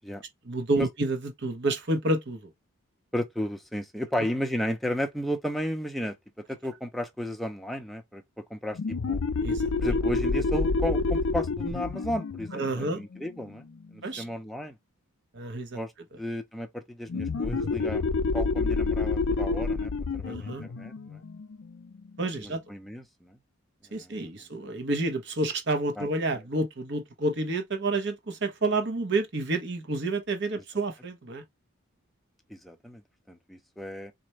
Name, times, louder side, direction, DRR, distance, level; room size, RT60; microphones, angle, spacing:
voice 1, 0.4-2.5 4.2-4.3 9.4-10.0 12.5-13.0 14.0-14.2 15.3-15.8 17.6-17.7 20.2-20.6 22.2-22.6 23.9-31.4, right 2 dB, 50° right, 0.9 m, -29 dB
voice 2, 3.1-6.2 6.5-8.2 8.5-8.8 9.1-9.2 9.8-13.7 13.9-14.8 15.7-15.9 16.2-21.2 22.4-23.4 23.9-24.1 26.0-26.1 32.5-33.0 33.3-34.1, equal, ahead, 0.6 m, -33 dB
sound 1, 8.7-14.1 17.1-22.4, left 3 dB, 70° left, 0.5 m, -29 dB
4.2 x 2.6 x 3.0 m
head